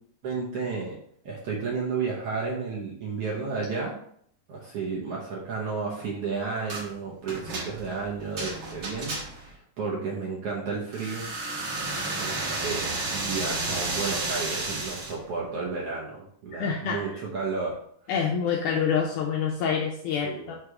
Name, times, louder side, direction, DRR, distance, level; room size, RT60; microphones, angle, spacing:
voice 1, 0.2-1.0 1.2-4.0 4.5-11.3 12.2-17.8 20.2-20.5, right 4 dB, 80° right, -4 dB, 1.3 m, -32 dB
sound 1, 6.7-6.9 7.3-9.5 10.9-15.2, right 2 dB, 60° right, 1.4 m, -32 dB
voice 2, 16.5-17.2 18.1-20.5, left 6 dB, 85° left, 0 dB, 1.7 m, -27 dB
6.6 x 3.3 x 4.7 m, 0.64 s
omnidirectional pair, 4.3 m